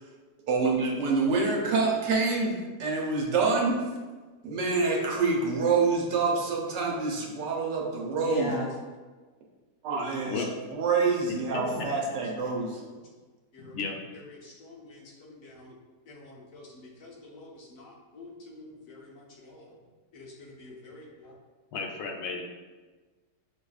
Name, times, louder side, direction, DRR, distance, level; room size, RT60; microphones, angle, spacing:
voice 1, 0.5-3.8 4.4-8.6 9.8-10.5 10.7-12.8, right 4 dB, 80° right, -1 dB, 1.4 m, -26 dB
voice 2, 8.2-8.7 13.5-13.7 14.4-15.7 16.1-16.7 17.0-19.8 20.1-21.3, left 1 dB, 60° left, -3 dB, 1.1 m, -41 dB
voice 3, 11.5-11.9 13.6-14.0 21.7-22.4, left 4 dB, 85° left, 2 dB, 1.3 m, -33 dB
6.8 x 2.5 x 2.4 m, 1.3 s
omnidirectional pair, 1.9 m